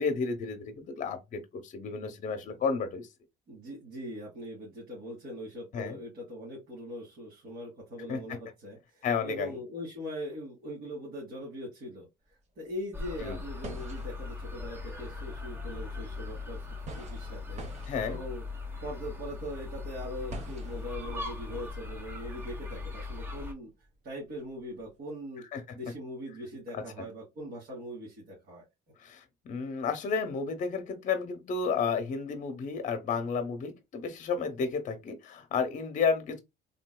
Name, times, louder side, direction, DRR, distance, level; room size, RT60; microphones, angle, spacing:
voice 1, 0.0-3.1 5.7-6.0 8.1-8.4 9.0-9.5 13.2-13.4 17.9-18.2 25.5-25.8 26.7-26.8 29.0-36.4, left 5 dB, 50° left, 0.8 m, -32 dB
voice 2, 3.5-16.7 17.0-18.4 18.8-23.7 24.0-25.4 25.7-28.7, equal, 65° right, 1.9 m, -41 dB
sound 1, 12.2-12.3 12.6-25.0, right 3 dB, 40° right, 1.1 m, -49 dB
sound 2, 12.9-23.5, left 3 dB, 15° right, 0.9 m, -39 dB
3.7 x 2.6 x 2.2 m
cardioid pair, 110°, 17 cm